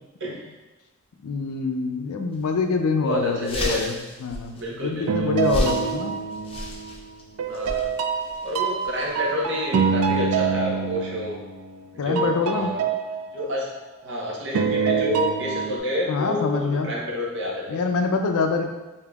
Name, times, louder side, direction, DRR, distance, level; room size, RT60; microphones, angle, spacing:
voice 1, 1.2-6.1 12.0-12.7 16.1-16.9 17.7-18.6, left 4 dB, 90° left, 4 dB, 0.4 m, -25 dB
sound 1, 2.3-2.5 2.9-3.0 3.2-10.3, left 1 dB, 25° left, 0.4 m, -34 dB
voice 2, 3.0-3.9 4.5-5.3 7.5-7.9 8.4-11.4 12.0-12.8 13.3-13.7 14.0-17.8, left 1 dB, 55° right, -3 dB, 0.8 m, -29 dB
sound 2, 5.1-7.0 7.4-11.9 12.1-14.1 14.5-15.8, right 6 dB, 85° right, 0.3 m, -26 dB
5.1 x 2.7 x 2.3 m, 1.1 s
head